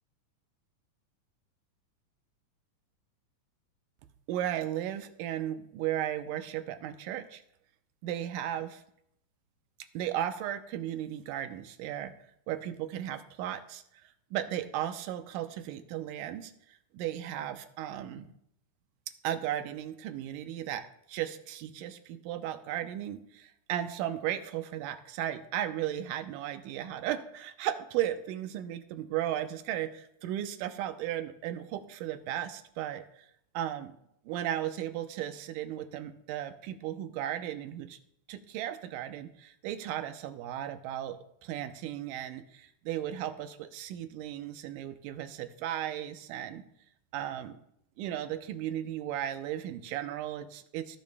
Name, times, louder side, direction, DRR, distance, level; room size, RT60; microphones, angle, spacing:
voice 1, 4.3-7.4 8.0-8.8 9.9-12.1 12.5-16.5 16.9-18.3 19.2-33.3 33.5-33.9 34.3-38.0 38.3-46.6 47.1-47.6 48.0-51.0, right 11 dB, 90° right, 9 dB, 2.3 m, -35 dB
17.0 x 10.0 x 2.2 m, 0.75 s
omnidirectional pair, 3.7 m